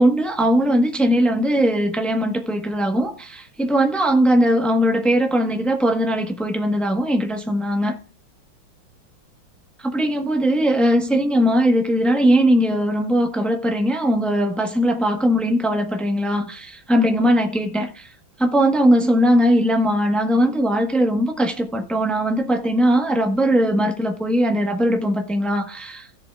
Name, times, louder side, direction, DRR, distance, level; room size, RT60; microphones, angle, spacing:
voice 1, 0.0-8.0 9.9-18.1 18.4-26.1, equal, ahead, 0.5 m, -19 dB
16.5 x 7.0 x 2.3 m
omnidirectional pair, 2.1 m